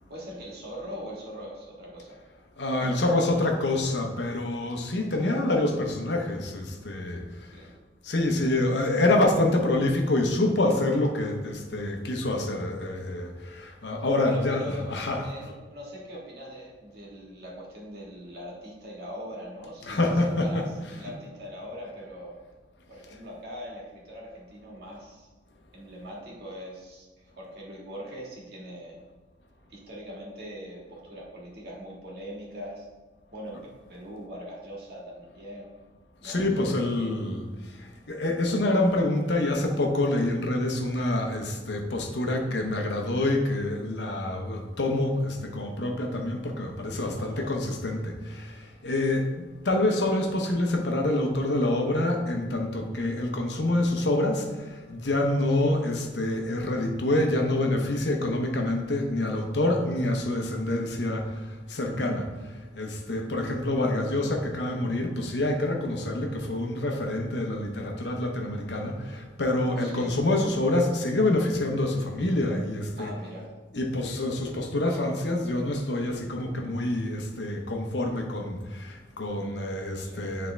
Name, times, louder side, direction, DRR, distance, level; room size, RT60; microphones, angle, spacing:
voice 1, 0.1-2.2 2.8-3.3 7.5-7.7 14.2-14.9 15.2-20.1 20.4-22.3 22.9-25.3 25.7-29.0 29.7-32.9 33.3-33.6 33.9-35.7 36.2-37.2 47.2-47.5 55.6-55.7 61.9-62.3 69.8-70.1 73.0-73.5 79.9-80.2, equal, 65° right, -3 dB, 1.7 m, -41 dB
voice 2, 2.6-7.5 8.0-15.2 19.9-20.7 36.2-37.5 37.8-62.3 62.7-73.1 73.7-80.5, left 1 dB, 75° left, 3 dB, 0.9 m, -27 dB
9.5 x 3.5 x 3.3 m, 1.3 s
head